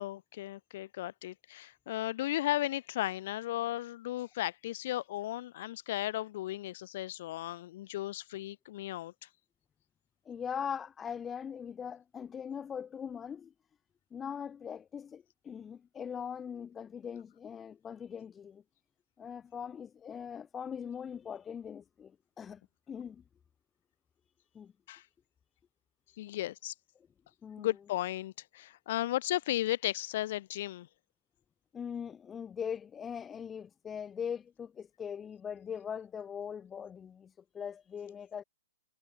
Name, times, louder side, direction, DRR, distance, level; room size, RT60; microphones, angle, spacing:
voice 1, 0.0-9.1 24.9-25.0 26.2-26.7 27.6-30.9, left 14 dB, 50° left, 1.2 m, -35 dB
voice 2, 10.3-13.5 14.1-18.6 19.2-22.6 22.9-23.2 24.5-24.7 27.4-27.7 31.7-38.4, left 7 dB, 15° left, 2.5 m, -41 dB
hypercardioid pair, 125°, 0 cm